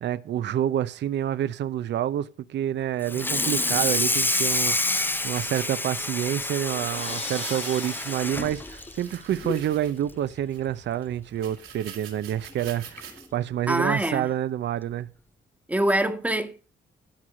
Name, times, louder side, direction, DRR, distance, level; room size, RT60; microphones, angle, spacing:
voice 1, 0.0-15.1, right 11 dB, 65° right, 0.6 m, -28 dB
Water tap faucet / Sink (filling or washing), 3.0-9.7 10.1-10.3 10.7-10.8 11.2-11.3 12.4-12.5 13.0-13.2, left 2 dB, 10° left, 0.6 m, -28 dB
sound 1, 4.0-5.9 7.2-8.3 8.8-10.2 10.5-10.6 11.0-11.1 11.4-13.3 13.8-13.9, right 9 dB, 80° right, 2.5 m, -44 dB
sound 2, 5.0-10.1, left 4 dB, 35° left, 1.1 m, -43 dB
voice 2, 13.7-14.3 15.7-16.6, right 1 dB, 5° right, 1.3 m, -24 dB
13.0 x 4.7 x 6.2 m
cardioid pair, 90°, 20 cm